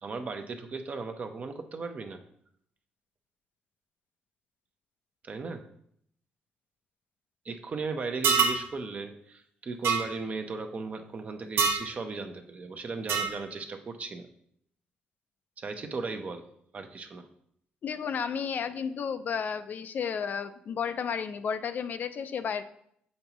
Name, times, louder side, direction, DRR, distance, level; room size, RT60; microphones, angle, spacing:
voice 1, 0.0-2.2 5.2-5.6 7.4-14.3 15.6-16.4 16.7-17.3, right 4 dB, 40° right, 6 dB, 0.7 m, -36 dB
sound 1, 8.2-8.6 9.8-10.0 11.6-11.9 13.1-13.4, right 5 dB, 75° right, 0.7 m, -24 dB
voice 2, 17.8-22.6, left 7 dB, 55° left, 11 dB, 0.4 m, -32 dB
7.0 x 5.3 x 2.9 m, 0.69 s
cardioid pair, 100°, 4 cm